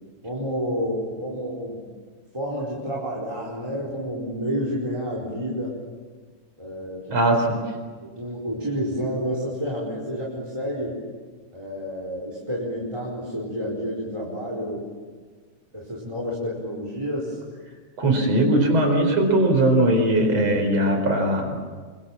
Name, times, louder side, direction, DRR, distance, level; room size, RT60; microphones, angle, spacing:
voice 1, 0.2-1.9 2.3-5.8 6.6-7.3 8.0-11.0 11.5-14.8 15.7-17.4, equal, 10° right, -3 dB, 4.3 m, -29 dB
voice 2, 7.1-7.6 18.0-21.6, right 1 dB, 50° right, 4 dB, 5.6 m, -20 dB
28.5 x 24.0 x 7.4 m, 1.5 s
omnidirectional pair, 3.6 m